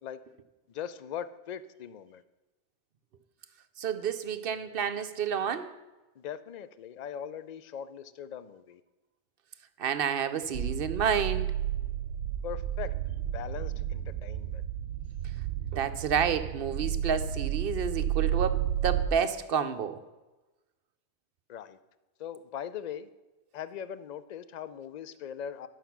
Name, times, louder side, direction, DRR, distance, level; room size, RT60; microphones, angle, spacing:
voice 1, 0.7-2.2 6.2-8.8 12.4-12.9 13.3-14.6 21.5-21.8 22.2-23.1 23.5-25.7, left 9 dB, 50° left, 14 dB, 0.5 m, -40 dB
voice 2, 3.8-5.8 9.8-11.5 15.7-20.0, right 7 dB, 60° right, 10 dB, 0.8 m, -30 dB
sound 1, 10.5-19.1, right 10 dB, 90° right, 0.9 m, -32 dB
11.0 x 6.6 x 5.9 m, 1.1 s
omnidirectional pair, 1.1 m